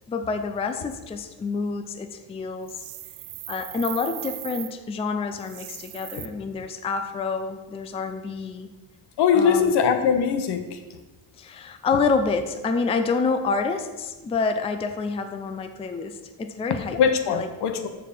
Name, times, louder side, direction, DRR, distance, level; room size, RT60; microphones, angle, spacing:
voice 1, 0.1-2.8 3.5-8.7 9.3-9.7 11.4-17.0 17.3-17.5, left 4 dB, 15° left, 7 dB, 0.4 m, -28 dB
sound 1, 2.6-4.7 5.4-6.3, right 16 dB, 80° right, 0.7 m, -38 dB
voice 2, 9.2-10.8 16.9-17.9, left 7 dB, 70° left, 7 dB, 1.2 m, -21 dB
14.0 x 4.7 x 5.4 m, 1.2 s
cardioid pair, 170°, 41 cm